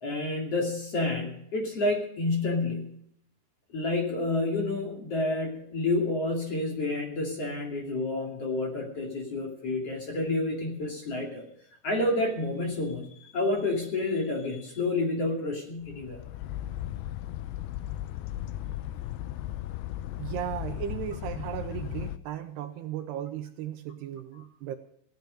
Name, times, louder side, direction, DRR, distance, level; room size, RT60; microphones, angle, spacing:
voice 1, 0.0-2.9 3.7-11.4 11.8-16.2, left 2 dB, 40° left, 0 dB, 3.1 m, -29 dB
sound 1, 15.8-22.2, left 13 dB, 85° left, 2.2 m, -36 dB
voice 2, 20.2-24.8, right 11 dB, 80° right, 8 dB, 2.8 m, -36 dB
17.0 x 10.5 x 5.2 m, 0.70 s
omnidirectional pair, 5.1 m